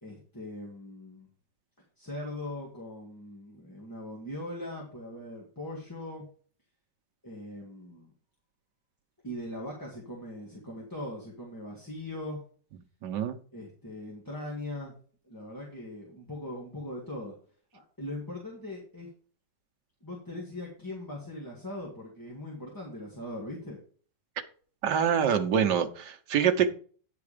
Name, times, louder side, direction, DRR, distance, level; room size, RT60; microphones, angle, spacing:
voice 1, 0.0-1.3 2.0-6.3 7.2-8.1 9.2-12.4 13.5-14.9 15.2-17.3 17.7-19.1 20.0-23.8, left 1 dB, 10° left, 1.8 m, -40 dB
voice 2, 13.0-13.4 24.8-26.7, right 8 dB, 70° right, 1.6 m, -25 dB
9.5 x 4.7 x 5.0 m
omnidirectional pair, 1.9 m